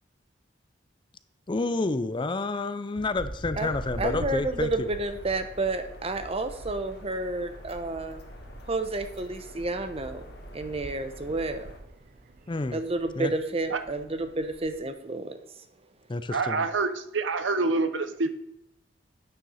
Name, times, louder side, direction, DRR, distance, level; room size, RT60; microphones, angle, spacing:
voice 1, 1.5-4.9 12.5-12.8 13.2-13.3 16.1-16.6, left 3 dB, 25° left, 0.5 m, -29 dB
sound 1, 3.0-14.9, right 1 dB, 50° right, 0.9 m, -44 dB
voice 2, 3.6-8.2 8.7-10.2 10.5-11.7 12.7-15.4, right 2 dB, 30° right, 0.9 m, -30 dB
sound 2, 3.7-11.8, left 1 dB, 60° left, 1.6 m, -47 dB
voice 3, 16.3-18.3, right 3 dB, 90° right, 0.8 m, -26 dB
9.1 x 6.7 x 5.6 m
head